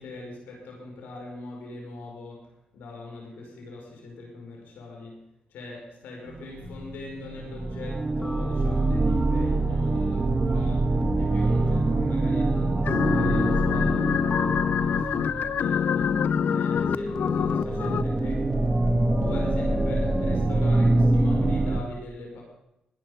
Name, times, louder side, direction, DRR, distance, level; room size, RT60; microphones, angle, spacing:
voice 1, 0.0-16.1 16.4-18.6 19.2-22.4, left 2 dB, 90° left, 0 dB, 5.4 m, -42 dB
sound 1, 6.4-6.5 7.2-16.2 17.0-21.8, right 2 dB, 35° right, 1.8 m, -25 dB
sound 2, 6.6-7.4 8.2-9.3 11.0-11.6 12.9-14.0 14.3-21.7, left 2 dB, 25° left, 1.2 m, -35 dB
sound 3, 12.8-18.0, left 8 dB, 70° left, 0.6 m, -25 dB
19.0 x 11.0 x 5.3 m, 0.90 s
cardioid pair, 60°, 3 cm